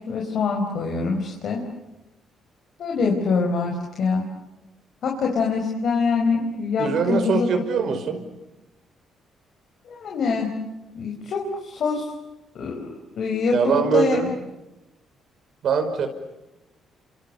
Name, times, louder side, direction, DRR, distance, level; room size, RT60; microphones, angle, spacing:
voice 1, 0.1-1.6 2.8-4.3 5.0-7.5 9.9-10.5 10.9-12.1 12.5-14.2, left 4 dB, 65° left, 0 dB, 5.0 m, -24 dB
voice 2, 6.8-8.2 13.5-14.4 15.6-16.1, right 6 dB, 65° right, 8 dB, 5.3 m, -22 dB
29.5 x 26.5 x 6.9 m, 0.97 s
cardioid pair, 90°, 0 cm